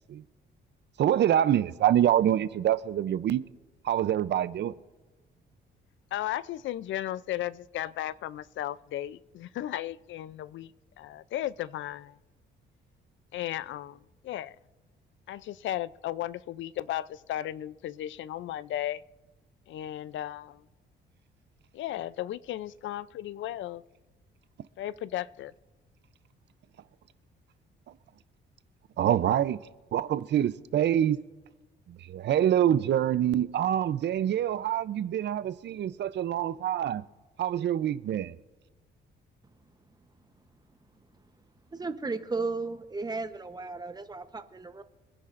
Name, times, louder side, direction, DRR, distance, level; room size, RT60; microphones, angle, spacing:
voice 1, 1.0-3.4 3.8-4.7 29.0-29.6 29.9-31.2 31.9-37.0 37.4-38.3, right 11 dB, 60° right, 0.6 m, -26 dB
voice 2, 6.1-10.7 11.0-12.2 13.3-14.0 14.2-14.6 15.3-19.0 19.7-20.6 21.7-23.8 24.8-25.5, left 13 dB, 75° left, 0.5 m, -35 dB
voice 3, 41.7-44.8, right 3 dB, 20° right, 0.9 m, -34 dB
25.5 x 10.0 x 2.5 m
cardioid pair, 90°, 20 cm